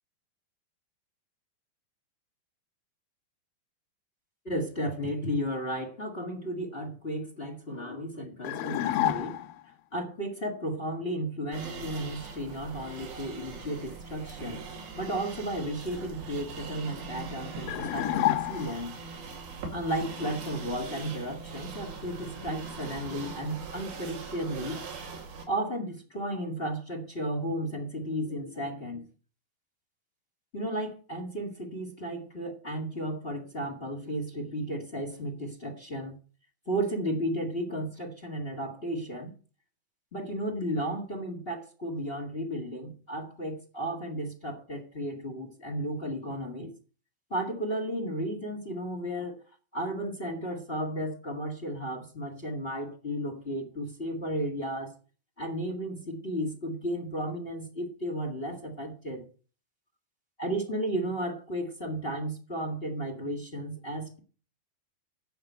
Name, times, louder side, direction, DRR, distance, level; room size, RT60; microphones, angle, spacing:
voice 1, 4.4-9.4 9.9-14.7 15.0-19.0 19.7-24.8 25.5-29.1 30.5-36.2 36.7-39.3 40.1-46.7 47.3-49.4 49.7-54.9 55.4-59.2 60.4-64.2, right 1 dB, 35° left, 3 dB, 0.8 m, -34 dB
sound 1, 8.4-9.6 17.7-19.0, left 14 dB, 80° left, 2.3 m, -29 dB
sound 2, 11.5-25.5, right 4 dB, 85° right, 4.3 m, -41 dB
9.4 x 5.9 x 8.0 m, 0.39 s
omnidirectional pair, 4.2 m